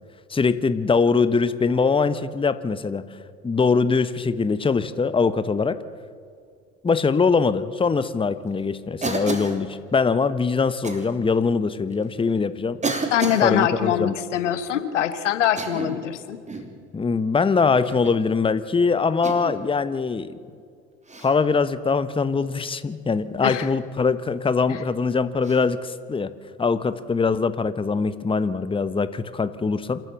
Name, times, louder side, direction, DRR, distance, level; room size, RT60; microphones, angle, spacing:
voice 1, 0.3-3.0 3.4-5.8 6.8-12.8 13.4-14.2 16.9-20.4 21.2-26.3 26.6-30.0, left 4 dB, 15° left, 13 dB, 1.0 m, -22 dB
Cough, 9.0-9.6 10.8-11.0 11.9-12.0 12.8-13.5 15.4-16.0 16.5-16.7 17.8-18.2 19.2-19.6 21.1-21.3 23.5-23.7 25.4-25.6, right 3 dB, 20° right, 3.1 m, -30 dB
voice 2, 13.1-16.4 23.4-23.7 24.7-24.8, left 10 dB, 80° left, 12 dB, 1.3 m, -23 dB
27.5 x 14.0 x 7.0 m, 2.3 s
figure-of-eight pair, 65°, 36 cm